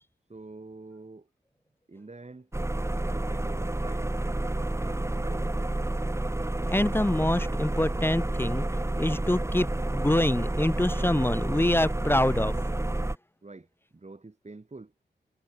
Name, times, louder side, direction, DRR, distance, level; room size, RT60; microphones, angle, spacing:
voice 1, 0.3-1.3 1.9-2.5 2.9-5.5 13.4-13.7 13.9-14.9, right 3 dB, 35° right, 6.3 m, -46 dB
sound 1, 2.5-13.2, right 1 dB, 15° right, 1.1 m, -29 dB
voice 2, 6.6-8.6 9.0-12.6, left 1 dB, 10° left, 0.8 m, -26 dB
wide cardioid pair, 70°, 19 cm